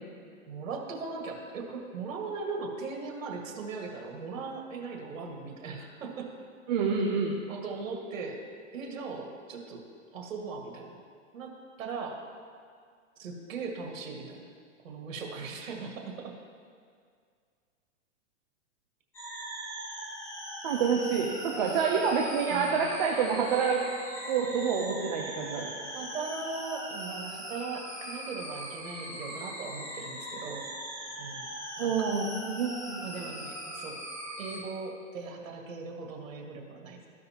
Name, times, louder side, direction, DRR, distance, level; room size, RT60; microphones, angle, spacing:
voice 1, 0.5-6.3 7.5-8.4 8.7-9.8 10.1-11.0 11.3-11.5 11.8-12.2 13.2-14.5 14.8-16.3 22.5-22.9 25.9-30.7 31.2-32.1 33.0-34.0 34.4-37.0, right 4 dB, 85° right, 1 dB, 1.8 m, -39 dB
voice 2, 6.7-7.3 20.6-23.8 24.2-25.7 31.8-33.2, right 6 dB, 35° right, -1 dB, 0.7 m, -28 dB
sound 1, 19.1-34.6, equal, 5° left, 0.7 m, -40 dB
14.5 x 5.3 x 2.9 m, 2.1 s
hypercardioid pair, 175°, 38 cm